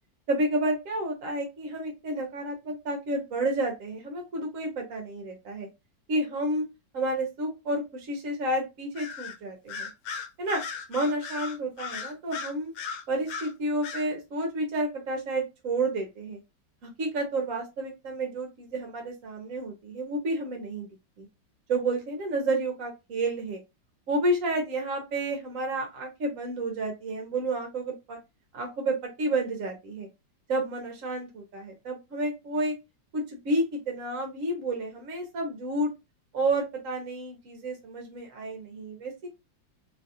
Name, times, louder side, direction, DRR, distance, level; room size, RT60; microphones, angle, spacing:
voice 1, 0.3-5.7 6.1-6.6 6.9-9.9 10.4-10.6 10.9-12.7 13.1-16.4 16.8-20.9 21.2-21.3 21.7-23.6 24.1-28.2 28.5-30.1 30.5-32.7 33.1-35.9 36.3-39.3, right 2 dB, 60° right, 2 dB, 1.0 m, -30 dB
Bird vocalization bird call bird song, 9.0-9.4 9.7-13.5 13.8-14.1, left 5 dB, 85° left, 1.3 m, -36 dB
3.2 x 2.3 x 2.6 m, 0.24 s
omnidirectional pair, 2.0 m